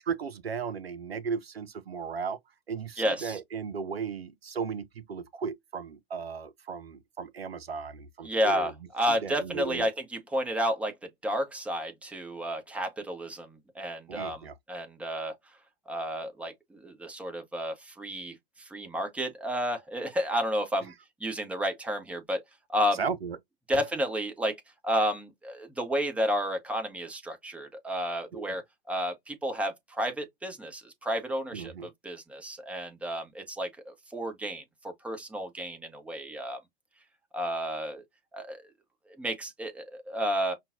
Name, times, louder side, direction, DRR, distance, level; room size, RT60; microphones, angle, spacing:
voice 1, 0.1-2.4 2.7-8.7 9.2-9.9 14.1-14.5 23.0-23.4 28.3-28.5 31.5-31.9, right 6 dB, 80° right, 0.5 m, -35 dB
voice 2, 3.0-3.4 8.2-10.9 11.2-15.4 15.9-20.9 21.2-22.4 22.7-23.0 23.7-24.6 24.8-36.6 37.3-38.0 38.3-38.6 39.1-40.5, equal, 5° right, 0.9 m, -31 dB
5.5 x 2.2 x 2.6 m
figure-of-eight pair, 95°, 30 cm